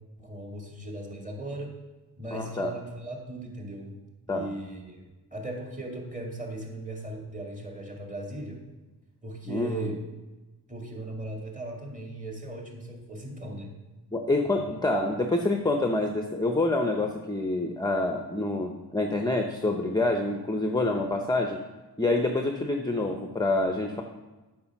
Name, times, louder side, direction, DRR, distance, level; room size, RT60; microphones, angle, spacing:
voice 1, 0.2-1.7 2.2-4.0 4.3-5.0 5.3-8.6 9.2-10.0 10.7-13.7 14.4-14.6, right 1 dB, 20° right, 0 dB, 2.1 m, -37 dB
voice 2, 2.3-2.7 4.3-4.5 9.5-10.0 14.1-21.6 22.0-24.0, left 2 dB, 10° left, 3 dB, 0.7 m, -27 dB
8.5 x 6.1 x 5.9 m, 1.1 s
wide cardioid pair, 100°, 41 cm